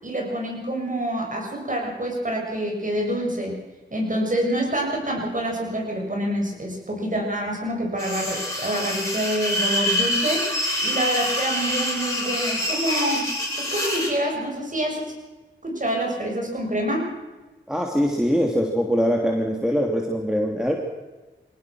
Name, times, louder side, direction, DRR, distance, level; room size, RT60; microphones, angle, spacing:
voice 1, 0.0-3.6 3.9-10.5 10.8-13.3 13.6-15.2 15.6-17.1, right 1 dB, 40° right, 0 dB, 7.2 m, -26 dB
sound 1, 8.0-14.1, left 1 dB, 15° left, 7.6 m, -26 dB
voice 2, 17.7-20.8, equal, 5° right, 1 dB, 3.0 m, -22 dB
23.0 x 18.0 x 6.3 m, 1.2 s
cardioid pair, 45°, 20 cm